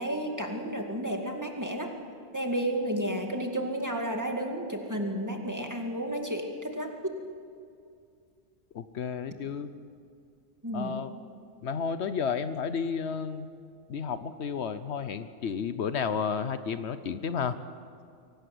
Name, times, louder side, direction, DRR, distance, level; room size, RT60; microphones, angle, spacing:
voice 1, 0.0-1.9 2.3-6.9 10.6-11.0, right 1 dB, 15° right, 2 dB, 2.2 m, -32 dB
voice 2, 8.7-9.7 10.7-11.1 11.6-13.5 13.9-17.6, left 6 dB, 75° left, 12 dB, 1.1 m, -32 dB
23.0 x 18.5 x 7.8 m, 2.4 s
omnidirectional pair, 1.1 m